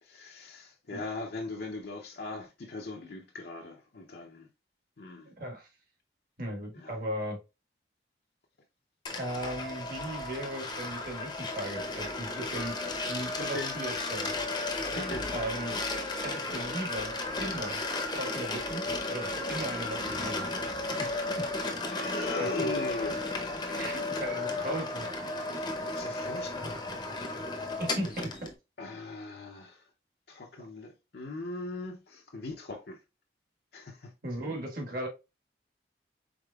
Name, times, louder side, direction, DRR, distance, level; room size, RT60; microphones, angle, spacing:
voice 1, 0.0-4.5 5.0-5.3 6.7-7.0 13.4-13.7 14.9-15.3 21.9-23.3 25.5-26.9 28.8-29.9 30.3-33.0 33.7-34.1, left 2 dB, 60° left, 0.6 m, -39 dB
voice 2, 5.2-5.7 6.4-7.4 9.1-12.8 13.1-14.3 14.9-15.8 16.2-17.8 18.1-20.5 21.0-21.4 22.4-22.7 23.7-25.1 27.8-28.5 30.6-30.7 34.2-35.1, right 1 dB, 50° right, 1.4 m, -37 dB
sound 1, 9.1-28.5, left 2 dB, 25° left, 0.7 m, -34 dB
5.0 x 4.1 x 2.3 m
head